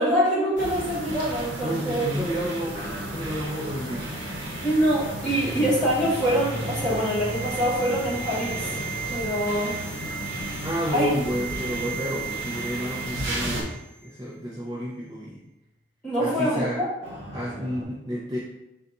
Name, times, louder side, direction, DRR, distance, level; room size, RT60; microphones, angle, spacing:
voice 1, 0.0-2.1 4.6-8.8 9.1-9.7 10.9-11.1 16.0-16.9, equal, 5° left, -9 dB, 1.2 m, -24 dB
sound 1, 0.5-13.6, right 1 dB, 60° right, 0.9 m, -34 dB
voice 2, 1.6-4.1 10.6-15.4 16.2-16.8 17.3-18.4, equal, 20° right, -5 dB, 0.4 m, -31 dB
sound 2, 2.7-13.1 13.4-13.6 14.3-14.4 17.0-17.8, equal, 35° right, 1.2 m, -40 dB
sound 3, 5.9-14.1 14.3-14.5, right 7 dB, 45° left, 0.5 m, -38 dB
4.0 x 2.3 x 3.9 m, 0.93 s
head